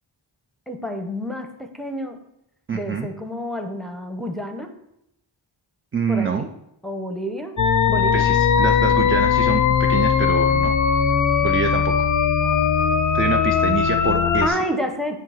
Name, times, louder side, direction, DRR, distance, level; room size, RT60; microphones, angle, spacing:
voice 1, 0.7-2.2 2.7-4.7 6.1-6.5 6.8-7.6 7.9-8.2 14.0-15.2, equal, ahead, 4 dB, 0.8 m, -29 dB
voice 2, 2.7-3.1 5.9-6.5 8.1-10.7 11.4-12.1 13.1-14.6, right 5 dB, 30° right, 5 dB, 0.4 m, -26 dB
sound 1, 7.6-14.5, left 6 dB, 40° left, 0.5 m, -19 dB
7.4 x 2.9 x 5.6 m, 0.81 s
wide cardioid pair, 60°, 47 cm